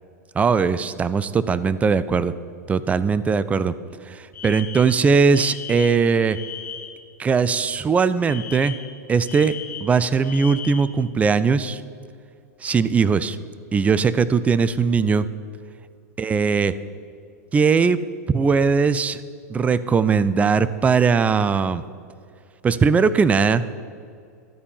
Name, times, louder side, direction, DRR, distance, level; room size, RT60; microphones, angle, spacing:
voice 1, 0.4-2.3 2.7-3.7 4.1-6.4 7.2-8.7 9.1-11.8 12.6-13.4 13.7-15.3 16.2-16.7 17.5-18.0 18.3-19.2 19.5-21.8 22.6-23.8, right 5 dB, 15° right, 15 dB, 0.4 m, -19 dB
Alarm, 4.3-7.1 8.3-11.0, left 8 dB, 80° left, 1.0 m, -37 dB
12.0 x 4.3 x 7.1 m, 2.3 s
hypercardioid pair, 105°, 9 cm